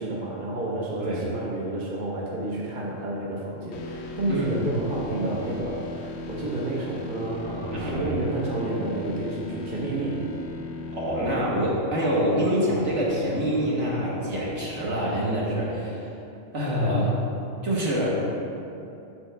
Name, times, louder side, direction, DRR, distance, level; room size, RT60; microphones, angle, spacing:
voice 1, 0.0-10.2, right 2 dB, 40° right, -4 dB, 0.9 m, -30 dB
sound 1, 3.7-13.7, left 2 dB, 65° left, 0.8 m, -38 dB
voice 2, 7.7-8.2 10.9-16.1 16.5-17.3 17.6-18.2, equal, 60° right, -5 dB, 1.7 m, -26 dB
7.1 x 6.5 x 3.3 m, 2.7 s
omnidirectional pair, 1.4 m